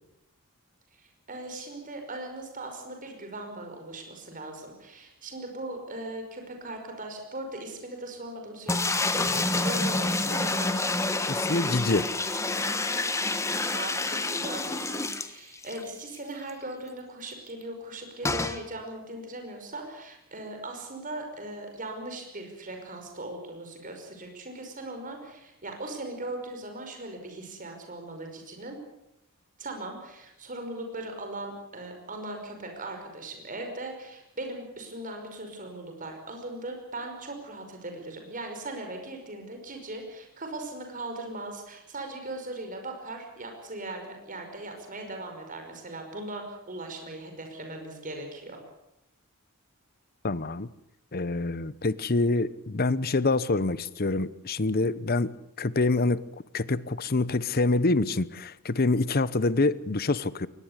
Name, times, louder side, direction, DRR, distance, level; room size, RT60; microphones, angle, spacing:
voice 1, 1.0-11.0 13.7-28.8 29.6-48.6, right 2 dB, 40° right, 5.4 m, -39 dB
sound 1, 8.7-15.8 16.2-16.3 16.5-16.6 18.2-18.6, left 2 dB, 15° left, 1.3 m, -28 dB
voice 2, 11.3-12.1 50.2-50.7 51.1-55.3 55.6-56.2 56.5-60.5, left 3 dB, 45° left, 0.8 m, -26 dB
22.5 x 19.5 x 8.2 m
head